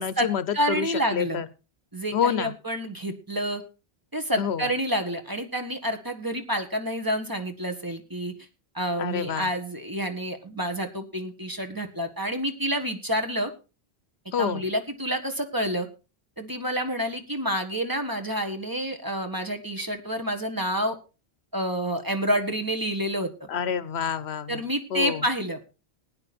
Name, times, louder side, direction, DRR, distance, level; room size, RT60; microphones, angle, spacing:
voice 1, 0.0-1.5 2.1-2.5 4.4-4.7 9.0-9.5 14.3-14.6 23.5-24.6 24.9-25.3, left 8 dB, 85° left, 16 dB, 1.1 m, -28 dB
voice 2, 0.5-1.4 1.9-3.6 4.1-8.3 8.7-13.5 14.4-15.9 16.4-21.0 21.5-23.5 24.5-25.6, equal, 20° right, 5 dB, 1.5 m, -28 dB
15.5 x 9.8 x 4.2 m, 0.32 s
omnidirectional pair, 1.1 m